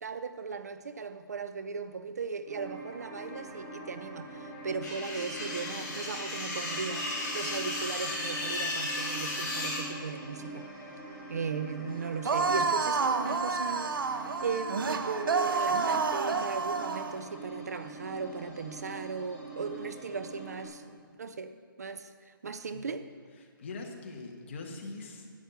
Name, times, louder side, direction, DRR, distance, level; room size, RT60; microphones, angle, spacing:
voice 1, 0.0-10.7 11.3-14.2 14.4-21.5 21.8-23.1, right 5 dB, 45° right, 0.5 m, -37 dB
sound 1, 2.4-20.6, right 2 dB, 15° right, 3.1 m, -44 dB
sound 2, 4.8-9.8, left 2 dB, 10° left, 2.5 m, -35 dB
sound 3, 12.2-17.1, right 4 dB, 70° right, 0.9 m, -29 dB
voice 2, 23.4-25.3, left 3 dB, 30° left, 1.2 m, -42 dB
11.5 x 8.0 x 6.8 m
hypercardioid pair, 175°, 12 cm